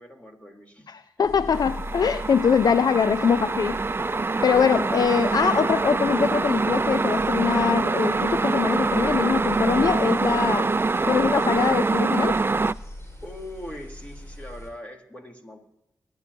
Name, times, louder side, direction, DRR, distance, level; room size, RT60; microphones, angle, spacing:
voice 1, 0.0-1.6 2.8-2.9 13.2-15.6, left 1 dB, 20° left, 1 dB, 3.4 m, -41 dB
voice 2, 0.9-3.8 4.1-10.7 11.0-12.4, left 6 dB, 70° left, 14 dB, 0.4 m, -23 dB
sound 1, 1.2-14.7, left 1 dB, 45° left, 4.8 m, -42 dB
sound 2, 1.5-12.7, right 3 dB, 35° right, 0.5 m, -24 dB
23.0 x 11.0 x 2.8 m, 0.83 s
cardioid pair, 40°, 7 cm